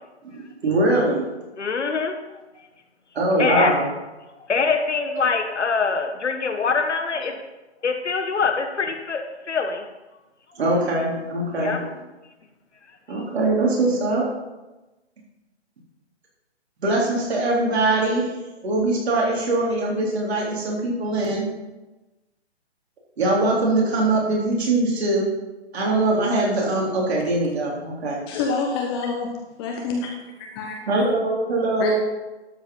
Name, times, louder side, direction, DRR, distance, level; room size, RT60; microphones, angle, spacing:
voice 1, 0.3-1.3 3.1-3.8 10.6-11.8 13.1-14.2 16.8-18.3 18.6-21.4 23.2-25.3 25.7-28.2 30.9-32.0, right 2 dB, 65° right, -4 dB, 3.7 m, -22 dB
voice 2, 1.6-2.2 3.4-3.7 4.5-7.3 7.8-9.9 11.6-11.8, left 5 dB, 90° left, 5 dB, 1.6 m, -24 dB
voice 3, 28.3-29.3 29.6-30.1 30.4-30.8 31.8-32.0, left 4 dB, 20° left, 1 dB, 1.0 m, -27 dB
12.5 x 5.2 x 5.6 m, 1.1 s
hypercardioid pair, 150°, 34 cm